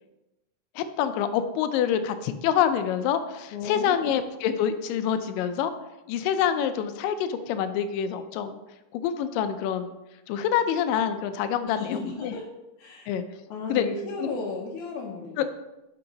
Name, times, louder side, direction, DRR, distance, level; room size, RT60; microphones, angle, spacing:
voice 1, 0.8-5.7 6.1-8.6 8.9-10.0 10.3-12.3 13.1-13.2 13.7-13.9 14.2-14.3 15.4-15.5, left 9 dB, 90° left, 10 dB, 2.2 m, -26 dB
voice 2, 3.5-4.1 11.6-12.5 12.8-13.1 13.5-15.4, left 4 dB, 75° left, -3 dB, 2.1 m, -34 dB
6.2 x 5.7 x 3.8 m, 0.99 s
omnidirectional pair, 3.8 m